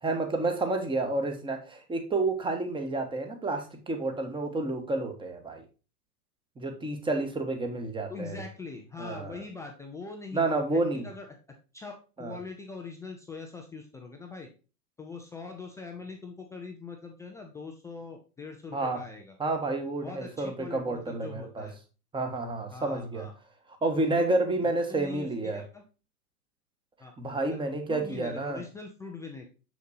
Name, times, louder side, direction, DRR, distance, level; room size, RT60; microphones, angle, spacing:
voice 1, 0.0-5.6 6.6-8.4 9.0-9.4 10.3-11.1 12.2-12.4 18.7-19.0 19.4-21.7 22.1-23.3 23.8-25.6 27.2-28.6, right 2 dB, 10° right, 5 dB, 1.4 m, -30 dB
voice 2, 8.1-11.3 11.7-14.5 15.0-19.4 20.0-21.7 22.7-23.3 23.9-24.2 24.6-25.8 27.0-27.1 27.5-27.6 27.9-29.5, left 4 dB, 5° left, 2 dB, 0.4 m, -42 dB
7.0 x 6.4 x 2.6 m, 0.32 s
hypercardioid pair, 115°, 47 cm